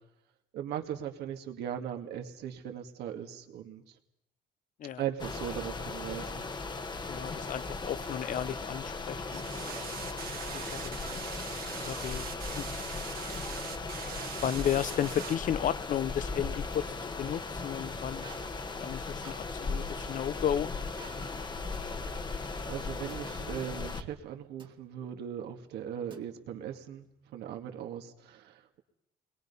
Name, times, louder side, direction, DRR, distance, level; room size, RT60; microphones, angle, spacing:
voice 1, 0.5-3.8 5.0-6.4 22.3-28.8, right 9 dB, 75° right, 4 dB, 2.2 m, -39 dB
sound 1, 5.2-24.0, left 3 dB, 25° left, 1.3 m, -37 dB
voice 2, 7.1-9.7 10.5-11.3 11.7-12.2 12.6-12.7 14.4-18.3 18.8-20.7, left 10 dB, 50° left, 19 dB, 0.7 m, -34 dB
sound 2, 9.3-15.4, right 9 dB, 60° right, 1.8 m, -42 dB
sound 3, 13.2-13.7 14.9-15.5 15.9-17.1 18.2-20.2 20.9-21.4 21.7-21.9 23.1-23.3 24.6-24.9 26.1-26.7, right 4 dB, 30° right, 1.8 m, -54 dB
28.5 x 21.5 x 5.6 m, 0.83 s
cardioid pair, 110°, 17 cm